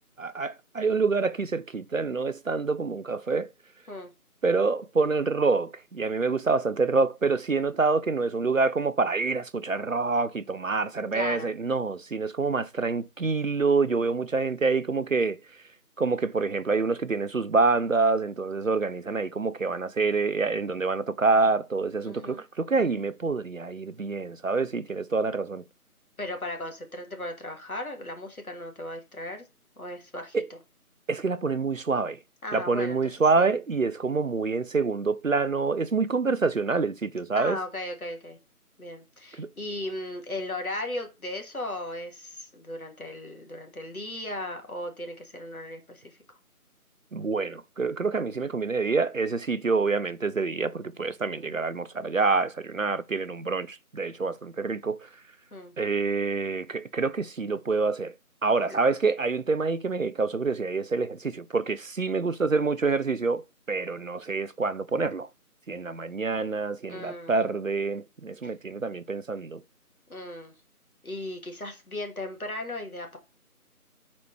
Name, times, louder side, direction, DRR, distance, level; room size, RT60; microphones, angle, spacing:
voice 1, 0.2-3.5 4.4-15.4 16.0-25.6 30.3-30.5 31.1-32.2 32.5-37.6 39.4-39.5 47.1-55.0 55.8-58.1 58.4-65.3 65.7-69.6, right 4 dB, 60° right, 0.5 m, -26 dB
voice 2, 11.1-11.5 22.1-22.4 26.2-29.4 29.8-30.4 32.4-33.0 33.4-33.6 37.3-38.4 38.8-46.2 51.3-51.5 55.5-55.7 58.7-58.8 66.9-67.3 70.1-70.5 71.0-73.2, left 1 dB, 65° left, 2.0 m, -36 dB
8.9 x 4.2 x 3.2 m
figure-of-eight pair, 175°, 45 cm